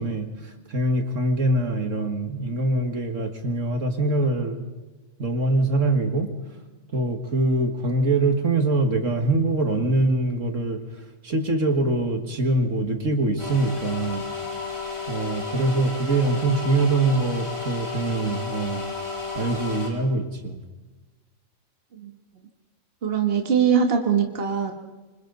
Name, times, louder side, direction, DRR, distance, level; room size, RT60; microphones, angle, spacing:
voice 1, 0.0-4.6 5.2-6.3 6.9-10.8 11.2-14.3 15.1-18.9 19.4-20.6, right 2 dB, 65° right, 4 dB, 2.2 m, -23 dB
sound 1, 13.4-19.9, left 4 dB, 20° left, 4.1 m, -32 dB
voice 2, 23.0-24.7, right 7 dB, 45° right, 3 dB, 1.6 m, -22 dB
26.5 x 25.5 x 4.0 m, 1.2 s
omnidirectional pair, 1.5 m